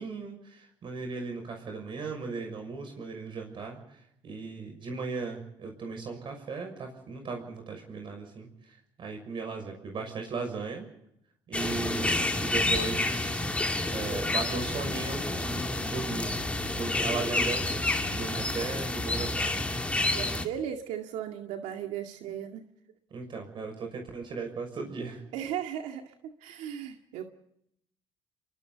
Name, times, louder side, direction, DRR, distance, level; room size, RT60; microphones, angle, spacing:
voice 1, 0.0-3.8 4.2-10.9 11.5-13.5 13.9-19.5 23.1-25.2, right 4 dB, 45° right, 4 dB, 6.2 m, -37 dB
sound 1, 11.5-20.4, left 2 dB, 10° left, 2.4 m, -29 dB
voice 2, 20.0-22.6 25.3-27.2, right 9 dB, 90° right, 4 dB, 2.1 m, -36 dB
29.5 x 23.5 x 4.0 m, 0.76 s
cardioid pair, 120°, 12 cm